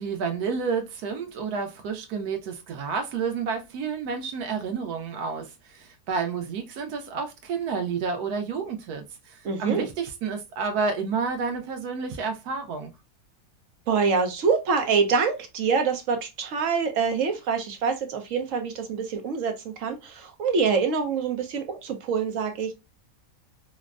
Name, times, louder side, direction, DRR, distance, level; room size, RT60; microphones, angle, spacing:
voice 1, 0.0-12.9, right 5 dB, 90° right, 1.2 m, -30 dB
voice 2, 9.4-9.9 13.9-22.7, right 5 dB, 65° right, 1.0 m, -25 dB
4.2 x 2.1 x 2.3 m
omnidirectional pair, 1.6 m